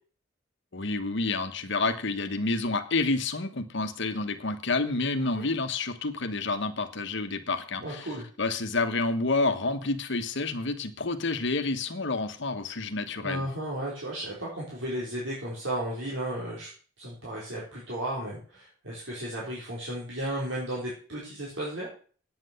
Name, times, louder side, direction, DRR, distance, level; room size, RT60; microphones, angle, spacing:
voice 1, 0.7-8.1 8.4-13.5, left 3 dB, 60° left, 8 dB, 1.2 m, -29 dB
voice 2, 7.8-8.2 13.2-16.7 17.0-21.9, right 1 dB, 65° right, -6 dB, 4.0 m, -34 dB
9.2 x 7.8 x 6.7 m, 0.42 s
head